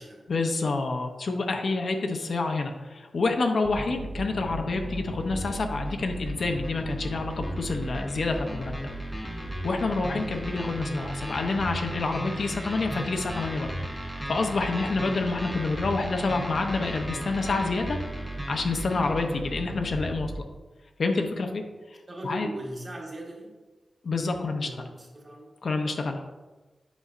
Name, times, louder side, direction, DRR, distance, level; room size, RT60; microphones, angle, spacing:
voice 1, 0.3-8.7 9.1-13.7 14.2-18.0 18.5-20.4 21.0-21.6 21.9-22.0 22.2-22.5 24.0-24.7 25.6-26.2, left 3 dB, 55° left, 4 dB, 0.6 m, -28 dB
sound 1, 3.6-20.4, right 1 dB, 5° left, 0.8 m, -35 dB
voice 2, 22.1-23.5 24.6-25.5, right 1 dB, 30° right, -2 dB, 1.2 m, -39 dB
8.1 x 5.3 x 2.4 m, 1.2 s
wide cardioid pair, 155°, 0 cm